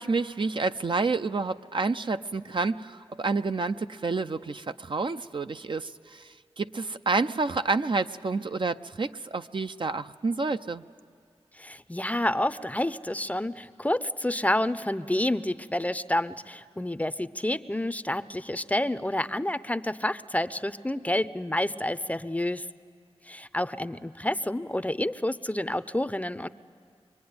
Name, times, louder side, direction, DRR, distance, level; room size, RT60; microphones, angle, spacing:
voice 1, 0.0-6.2 6.6-10.8, right 3 dB, 50° right, 9 dB, 0.6 m, -29 dB
voice 2, 11.6-22.6 23.3-26.5, left 1 dB, 15° left, 14 dB, 0.6 m, -29 dB
24.0 x 24.0 x 9.6 m, 2.2 s
cardioid pair, 55°, 11 cm